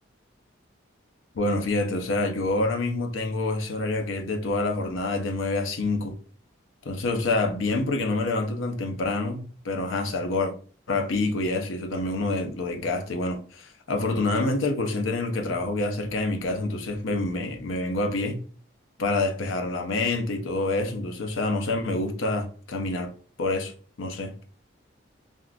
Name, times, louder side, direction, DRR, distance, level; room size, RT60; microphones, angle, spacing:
voice 1, 1.4-6.2 6.9-10.5 10.9-18.4 19.0-23.1 23.4-23.7 24.0-24.3, left 2 dB, 80° left, 0.6 m, -27 dB
3.6 x 2.4 x 2.3 m
head